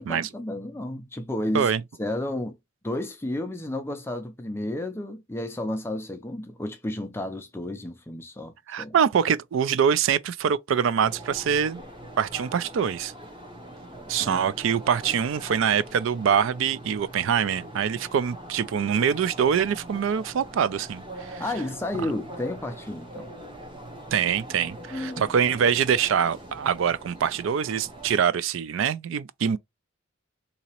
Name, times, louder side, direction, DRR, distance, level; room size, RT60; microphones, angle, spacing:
voice 1, 0.0-1.7 2.0-2.6 2.8-9.0 14.2-14.4 21.4-23.3 24.9-25.3, left 1 dB, 10° left, 0.4 m, -32 dB
voice 2, 8.7-11.8 12.2-13.1 14.1-21.4 22.0-22.1 24.1-29.6, right 7 dB, 70° right, 0.3 m, -24 dB
sound 1, 11.0-28.2, right 1 dB, 25° right, 0.9 m, -42 dB
4.0 x 2.8 x 2.9 m
head